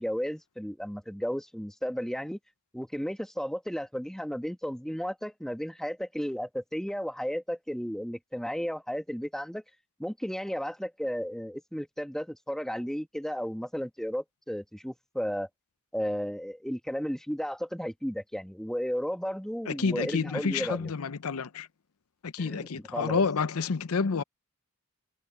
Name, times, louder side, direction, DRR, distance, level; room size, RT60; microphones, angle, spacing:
voice 1, 0.0-2.4 2.7-9.6 10.0-15.5 15.9-20.9 22.4-23.2, equal, ahead, 1.4 m, -34 dB
voice 2, 19.7-21.7 22.2-24.2, left 5 dB, 90° left, 0.7 m, -29 dB
head